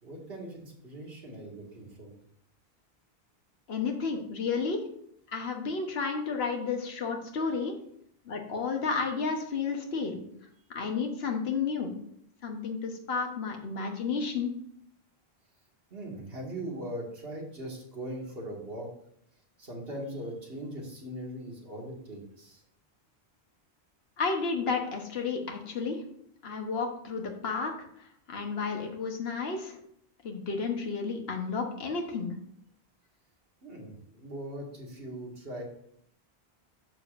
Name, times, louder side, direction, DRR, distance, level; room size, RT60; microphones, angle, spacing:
voice 1, 0.0-2.2 15.9-18.9 19.6-22.6 33.6-35.6, right 1 dB, 70° right, -2 dB, 2.2 m, -40 dB
voice 2, 3.7-4.8 5.3-7.8 8.3-10.2 10.7-11.9 12.4-14.5 24.2-26.0 26.4-27.9 28.3-29.8 30.2-32.3, left 5 dB, 80° left, 2 dB, 1.3 m, -32 dB
11.5 x 7.0 x 2.6 m, 0.69 s
omnidirectional pair, 1.0 m